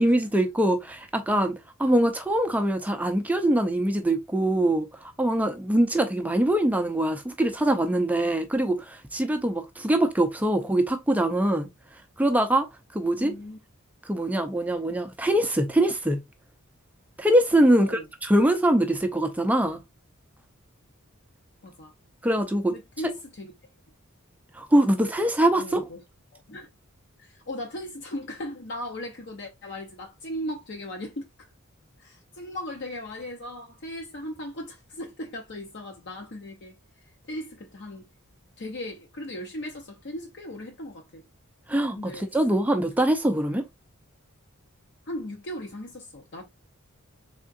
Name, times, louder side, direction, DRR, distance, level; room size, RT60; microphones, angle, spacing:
voice 1, 0.0-11.7 12.2-12.7 12.9-13.3 14.0-16.2 17.2-19.8 22.2-22.7 24.5-25.8 41.7-43.6, right 1 dB, 5° right, 0.4 m, -23 dB
voice 2, 13.2-13.6 17.7-18.1 21.6-21.9 22.7-23.5 25.6-26.0 26.3-26.7 27.2-31.5 32.0-36.8 37.3-38.1 38.6-41.2 42.0-42.3 45.1-46.4, left 1 dB, 55° left, 0.6 m, -37 dB
3.6 x 3.5 x 2.4 m
head